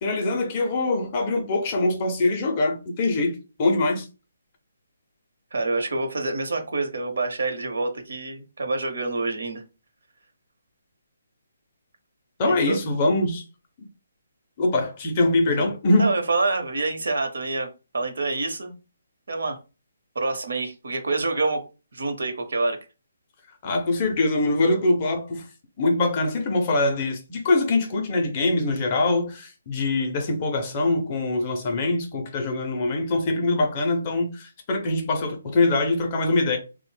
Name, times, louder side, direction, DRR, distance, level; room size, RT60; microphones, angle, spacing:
voice 1, 0.0-4.1 12.4-13.4 14.6-16.1 23.6-25.5 25.8-36.6, left 2 dB, 20° left, 0.4 m, -23 dB
voice 2, 5.5-9.6 12.5-12.8 15.6-15.7 16.0-18.7 19.3-19.6 20.1-21.6 21.9-22.8, right 3 dB, 65° right, 0.7 m, -27 dB
2.7 x 2.0 x 3.1 m
hypercardioid pair, 175°, 0 cm